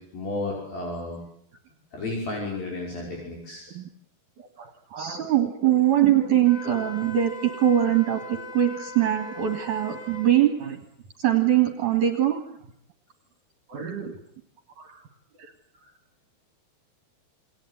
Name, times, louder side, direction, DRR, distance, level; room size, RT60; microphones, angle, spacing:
voice 1, 0.1-1.2 1.9-3.7, left 2 dB, 60° left, -2 dB, 7.3 m, -32 dB
voice 2, 4.4-10.8 11.2-12.4 13.7-14.2 14.8-15.0 15.4-15.5, right 11 dB, 55° right, 7 dB, 3.0 m, -23 dB
Wind instrument woodwind instrument, 6.4-10.4, left 1 dB, 10° left, 7.2 m, -40 dB
29.0 x 21.5 x 9.4 m, 0.70 s
omnidirectional pair, 4.6 m